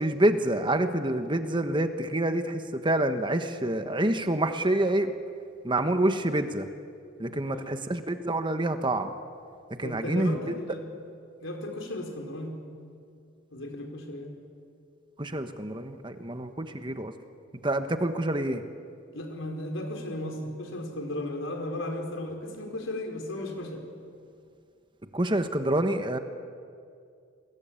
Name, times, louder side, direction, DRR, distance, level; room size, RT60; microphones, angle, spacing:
voice 1, 0.0-5.1 5.6-6.7 7.2-9.1 9.7-10.4 15.2-17.1 17.6-18.6 25.1-26.2, right 1 dB, 25° right, 8 dB, 1.3 m, -27 dB
voice 2, 7.2-7.7 9.8-10.8 11.4-12.6 13.5-14.4 19.1-23.8, left 1 dB, 75° left, 2 dB, 5.0 m, -35 dB
29.5 x 22.0 x 9.0 m, 2.4 s
head